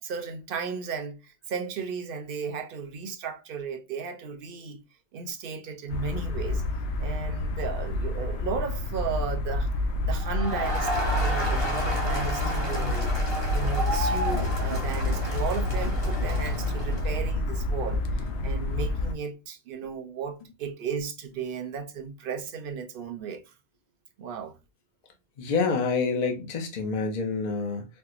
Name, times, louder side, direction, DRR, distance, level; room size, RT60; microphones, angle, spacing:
voice 1, 0.0-4.8 5.1-6.6 7.0-9.7 10.0-13.2 13.5-23.4 24.2-24.6, right 6 dB, 60° right, 0.7 m, -35 dB
sound 1, 5.9-19.1, left 2 dB, 85° left, 0.9 m, -28 dB
Crowd, 10.2-17.2, equal, 30° left, 1.2 m, -32 dB
voice 2, 25.4-27.9, left 4 dB, 45° left, 0.7 m, -27 dB
4.3 x 2.1 x 2.4 m
omnidirectional pair, 1.1 m